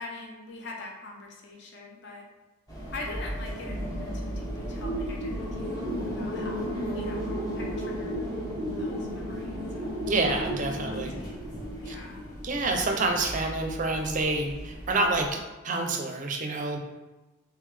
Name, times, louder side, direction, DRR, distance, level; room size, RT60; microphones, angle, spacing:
voice 1, 0.0-2.3 2.9-8.2 8.8-9.9 10.1-11.3 11.8-12.2, left 2 dB, 55° left, -1 dB, 0.7 m, -43 dB
sound 1, 2.7-15.3, equal, 15° left, 0.8 m, -34 dB
voice 2, 10.1-11.1 11.9-12.0 12.4-16.8, right 2 dB, 40° right, 3 dB, 0.4 m, -28 dB
3.7 x 3.3 x 3.2 m, 1.1 s
head